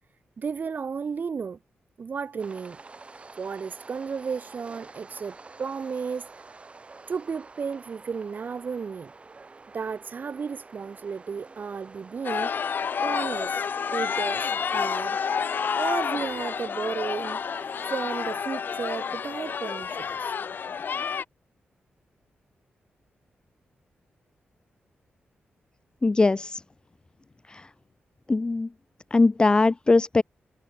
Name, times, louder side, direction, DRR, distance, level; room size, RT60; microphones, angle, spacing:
voice 1, 0.4-1.6 2.0-2.8 3.4-6.6 7.1-9.1 9.7-12.5 13.0-13.7 13.9-15.2 15.7-17.4 17.9-20.3 20.7-20.8, right 5 dB, 55° right, 3.9 m, -33 dB
sound 1, 2.4-17.9, right 3 dB, 30° right, 3.6 m, -48 dB
sound 2, 12.2-21.2, left 6 dB, 60° left, 1.7 m, -29 dB
voice 2, 26.0-26.6 27.5-27.7 28.3-28.7 29.1-30.2, left 3 dB, 25° left, 0.5 m, -21 dB
wide cardioid pair, 105°, 4 cm